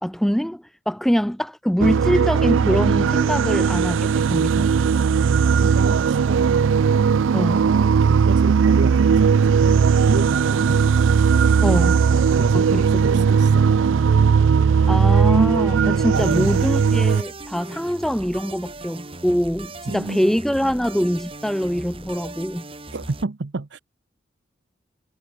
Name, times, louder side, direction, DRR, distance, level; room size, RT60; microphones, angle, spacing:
voice 1, 0.0-4.7 7.3-7.7 11.6-12.1 12.5-13.3 14.9-22.7, equal, ahead, 0.5 m, -24 dB
sound 1, 1.8-17.2, right 6 dB, 90° right, 0.4 m, -18 dB
voice 2, 5.6-6.5 7.3-9.7 10.0-10.8 12.1-14.1 16.1-16.6 19.9-20.3 22.9-23.8, right 3 dB, 65° right, 0.7 m, -29 dB
sound 2, 16.1-23.2, right 2 dB, 30° right, 4.4 m, -38 dB
head